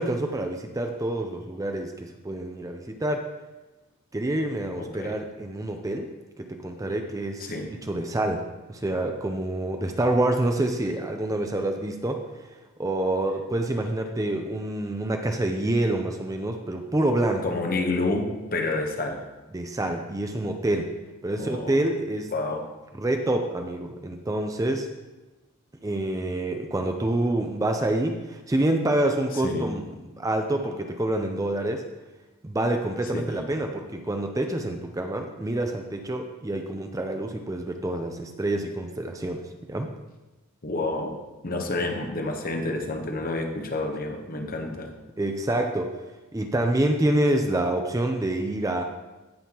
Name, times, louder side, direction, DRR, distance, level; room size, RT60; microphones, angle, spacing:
voice 1, 0.0-3.3 4.1-6.1 6.4-17.5 19.5-20.9 21.2-22.3 22.9-24.9 25.8-29.8 30.2-31.8 32.4-39.9 45.2-46.0 46.3-48.8, right 1 dB, 15° right, 4 dB, 0.5 m, -27 dB
voice 2, 4.8-5.2 7.4-7.7 17.4-19.2 21.4-21.8 22.3-22.7 29.4-29.7 33.1-33.5 40.6-44.9, left 2 dB, 40° left, 3 dB, 1.0 m, -29 dB
16.5 x 5.6 x 2.9 m, 1.1 s
head